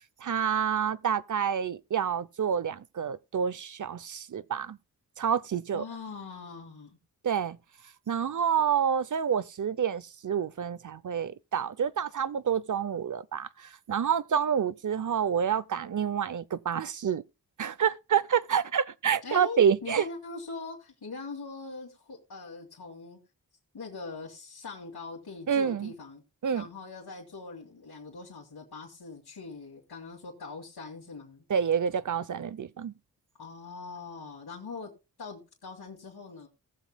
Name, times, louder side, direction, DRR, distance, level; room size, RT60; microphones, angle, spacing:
voice 1, 0.2-4.8 5.2-5.8 7.2-7.6 8.1-17.2 17.6-20.1 25.5-25.9 26.4-26.7 31.5-32.9, right 7 dB, 55° right, 0.7 m, -28 dB
voice 2, 5.7-7.0 19.2-23.2 23.7-26.2 26.5-31.4 33.4-34.9 35.2-36.5, left 4 dB, 85° left, 2.8 m, -42 dB
19.0 x 7.2 x 2.3 m
wide cardioid pair, 75°, 37 cm